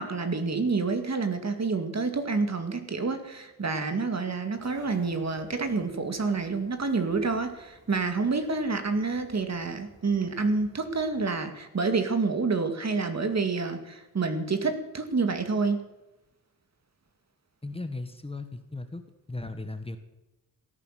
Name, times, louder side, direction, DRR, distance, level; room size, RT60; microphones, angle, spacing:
voice 1, 0.0-15.8, right 4 dB, 50° right, 7 dB, 2.2 m, -28 dB
sound 1, 4.6-11.3, right 2 dB, 35° right, 4.9 m, -51 dB
voice 2, 17.6-19.0 19.3-20.0, left 2 dB, 15° left, 8 dB, 1.4 m, -36 dB
17.0 x 10.0 x 7.6 m, 0.99 s
wide cardioid pair, 100°, 34 cm